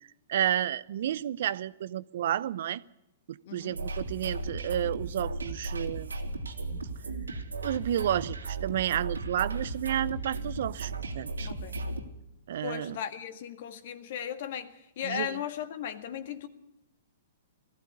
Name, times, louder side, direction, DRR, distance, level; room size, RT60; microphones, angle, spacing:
voice 1, 0.3-2.8 3.3-6.1 7.6-11.5 12.5-13.0 15.0-15.4, right 11 dB, 60° right, 0.7 m, -31 dB
voice 2, 3.4-3.8 11.4-11.9 12.6-16.5, left 9 dB, 55° left, 1.8 m, -37 dB
sound 1, 3.7-12.0, right 2 dB, 90° right, 2.7 m, -36 dB
19.5 x 15.0 x 9.7 m
hypercardioid pair, 120°, 0 cm